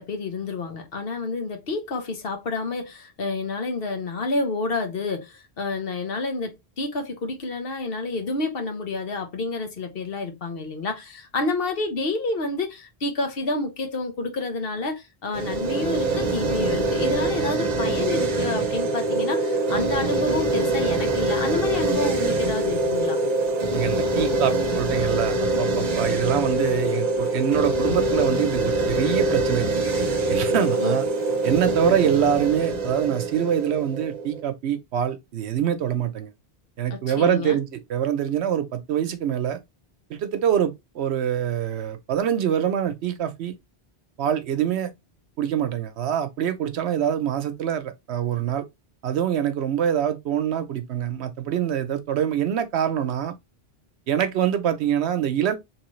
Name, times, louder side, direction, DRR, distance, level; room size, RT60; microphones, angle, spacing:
voice 1, 0.0-23.2 30.8-31.0 36.9-37.6, left 3 dB, 60° left, 1.1 m, -29 dB
sound 1, 15.3-34.4, right 2 dB, 45° right, 0.9 m, -24 dB
voice 2, 23.7-29.8 30.3-31.0 31.4-36.3 36.8-39.6 40.1-43.6 44.2-44.9 45.4-48.6 49.0-53.3 54.1-55.6, right 9 dB, 90° right, 1.0 m, -25 dB
3.8 x 3.0 x 3.0 m
omnidirectional pair, 1.1 m